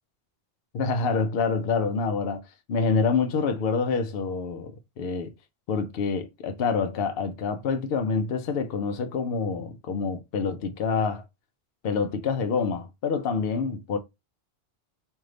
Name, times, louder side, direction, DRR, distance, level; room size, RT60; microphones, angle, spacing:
voice 1, 0.7-5.3 5.7-11.2 11.8-14.0, left 5 dB, 70° left, 0.8 m, -27 dB
3.2 x 2.7 x 3.7 m
omnidirectional pair, 1.1 m